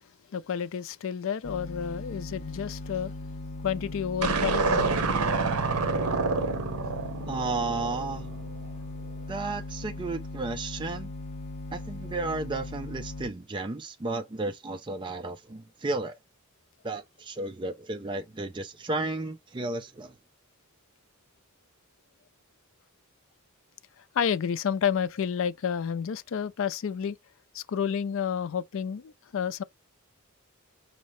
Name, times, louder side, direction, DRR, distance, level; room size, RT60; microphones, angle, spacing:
voice 1, 0.3-3.1 3.6-4.9 24.1-27.2 27.5-29.6, left 7 dB, 60° left, 0.4 m, -30 dB
sound 1, 1.4-13.3, left 2 dB, 30° left, 1.1 m, -39 dB
sound 2, 4.2-8.6, right 4 dB, 80° right, 0.8 m, -28 dB
voice 2, 7.3-8.3 9.3-11.1 11.7-16.2 16.8-20.1, right 3 dB, 20° right, 0.4 m, -33 dB
5.2 x 2.7 x 3.1 m
head